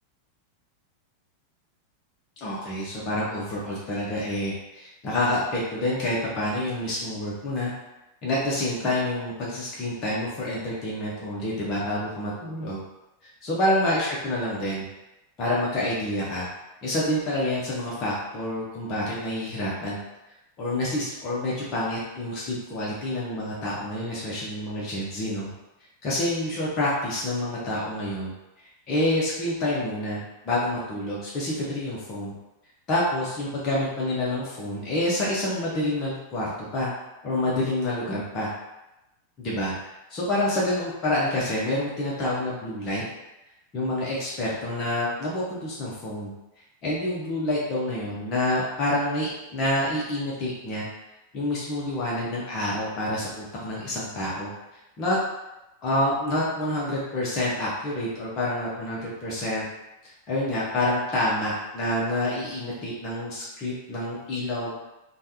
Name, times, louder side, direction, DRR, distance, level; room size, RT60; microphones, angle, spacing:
voice 1, 2.4-7.7 8.2-12.8 13.4-14.8 15.4-16.5 16.8-20.0 20.6-25.5 26.0-28.3 28.9-32.3 32.9-36.9 37.2-38.5 39.4-39.7 40.1-43.0 43.7-46.3 46.8-50.9 51.3-54.5 55.0-55.2 55.8-59.6 60.0-64.7, left 1 dB, 30° left, -6 dB, 0.7 m, -28 dB
3.3 x 2.3 x 2.8 m, 0.97 s
figure-of-eight pair, 90°, 0 cm